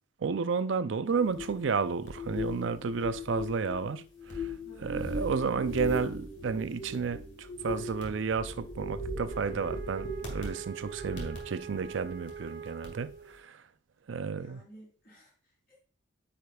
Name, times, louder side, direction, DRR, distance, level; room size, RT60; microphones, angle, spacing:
voice 1, 0.2-4.0 4.3-4.5 4.8-13.6 14.1-14.6, right 5 dB, 80° right, 0.5 m, -32 dB
sound 1, 1.1-12.5 12.8-13.1, left 1 dB, 65° left, 2.0 m, -38 dB
voice 2, 4.6-5.3 14.3-15.8, right 1 dB, 50° left, 3.5 m, -55 dB
Wind instrument woodwind instrument, 9.2-13.4, right 7 dB, 50° right, 0.7 m, -44 dB
9.1 x 5.1 x 2.3 m
head